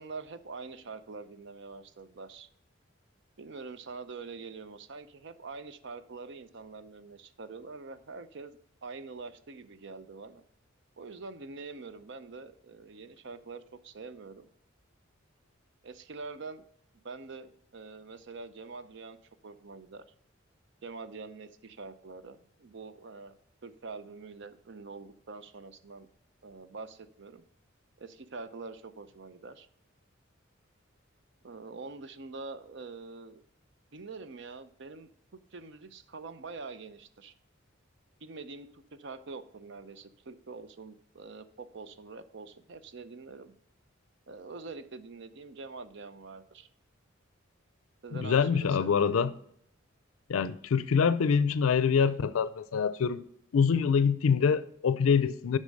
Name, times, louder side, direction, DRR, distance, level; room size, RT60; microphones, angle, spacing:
voice 1, 0.0-2.5 3.4-10.4 11.0-14.5 15.8-16.7 17.0-19.2 19.4-20.0 20.8-23.3 23.6-26.1 26.4-27.4 28.0-29.7 31.4-33.4 33.9-37.3 38.2-43.5 44.3-46.7 48.0-49.1, right 4 dB, 60° right, 0.6 m, -45 dB
voice 2, 48.2-49.3 50.3-53.2 53.5-55.6, left 6 dB, 90° left, 0.4 m, -25 dB
8.2 x 5.5 x 5.3 m
head